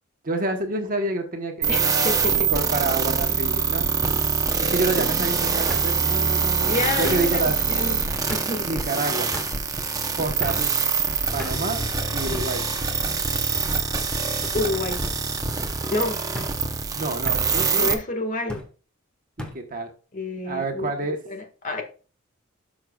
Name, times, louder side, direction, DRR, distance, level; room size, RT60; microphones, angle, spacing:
voice 1, 0.2-3.8 4.6-7.5 8.7-9.3 10.2-10.9 11.3-11.8 12.1-12.7 16.9-18.0 19.4-19.9 20.4-21.2, right 2 dB, 45° right, 4 dB, 1.2 m, -28 dB
sound 1, 1.6-17.9, right 5 dB, 15° right, 0.9 m, -24 dB
voice 2, 1.7-2.5 3.3-3.4 6.7-8.0 8.3-8.7 14.5-15.0 15.9-16.2 17.8-18.6 20.1-20.9 21.3-21.8, left 2 dB, 40° left, 5 dB, 1.7 m, -28 dB
sound 2, 3.2-3.5 4.6-4.7 5.7-5.9 7.0-7.2 8.3-8.5 9.3-9.5 10.4-10.6 11.4-11.6 12.3-12.7 13.5-13.7 14.4-14.6 15.5-15.6 16.3-16.6 17.2-17.5 18.5-18.7 19.4-19.6, left 1 dB, 5° left, 1.8 m, -36 dB
12.0 x 6.3 x 2.4 m, 0.37 s
head